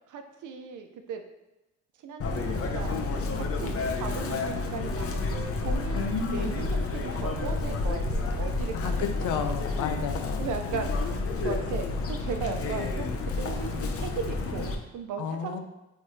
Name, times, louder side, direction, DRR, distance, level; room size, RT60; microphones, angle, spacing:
voice 1, 0.1-1.2 2.0-3.0 3.4-9.1 9.8-10.0 10.4-11.1 11.4-13.1 13.4-15.6, right 5 dB, 80° right, 6 dB, 0.8 m, -37 dB
Chirp tweet, 2.2-14.8, left 3 dB, 50° left, 0.9 m, -30 dB
voice 2, 5.9-6.7 8.7-10.5 15.2-15.6, left 6 dB, 90° left, 7 dB, 0.7 m, -32 dB
8.5 x 3.4 x 3.3 m, 1.0 s
cardioid pair, 90°, 30 cm